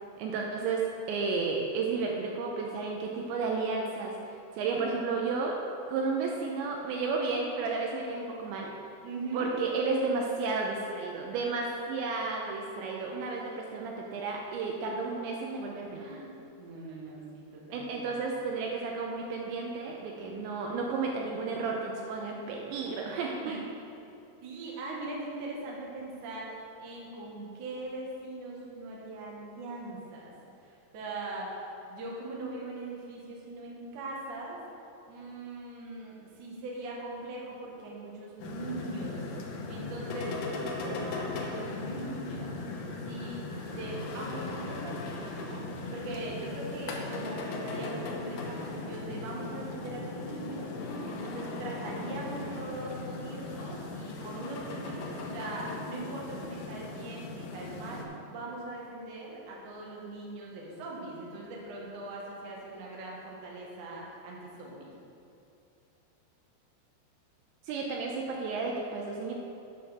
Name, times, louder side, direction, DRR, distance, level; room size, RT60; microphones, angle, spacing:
voice 1, 0.2-5.6 5.9-8.7 9.3-16.1 17.7-23.6 67.6-69.3, right 4 dB, 80° right, 0 dB, 2.9 m, -32 dB
voice 2, 9.0-9.5 12.7-13.4 16.0-16.3 16.6-18.0 23.4-23.5 24.4-30.3 30.6-34.6 35.1-42.6 43.0-58.0 58.3-64.9, right 2 dB, 60° right, -3 dB, 2.2 m, -41 dB
sound 1, 38.4-58.0, left 3 dB, 75° left, 2.2 m, -38 dB
9.2 x 6.2 x 6.1 m, 2.7 s
omnidirectional pair, 5.5 m